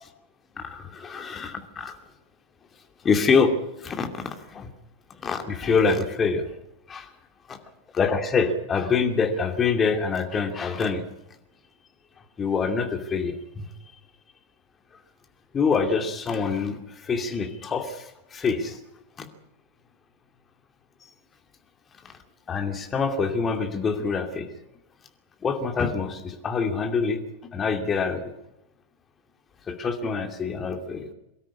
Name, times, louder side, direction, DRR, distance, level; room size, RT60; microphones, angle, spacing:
voice 1, 0.6-2.0 3.0-3.5 3.8-4.7 5.2-6.5 6.9-7.1 7.5-7.6 7.9-11.0 12.4-13.7 15.5-18.8 19.2-19.3 22.5-24.5 25.4-27.2 27.5-28.3 29.7-31.1, left 5 dB, 20° left, 5 dB, 2.7 m, -25 dB
23.5 x 13.0 x 9.7 m, 0.90 s
figure-of-eight pair, 90°, 0 cm